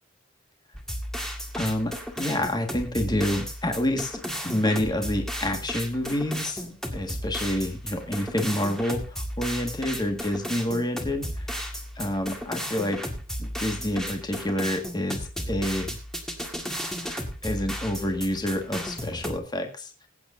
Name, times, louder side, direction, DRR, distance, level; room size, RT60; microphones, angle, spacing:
sound 1, 0.7-19.4, equal, 5° left, 1.8 m, -34 dB
voice 1, 1.5-11.6 12.0-13.0 13.4-16.0 17.0-20.1, left 1 dB, 20° left, 4 dB, 1.7 m, -28 dB
21.5 x 9.0 x 2.7 m, 0.28 s
head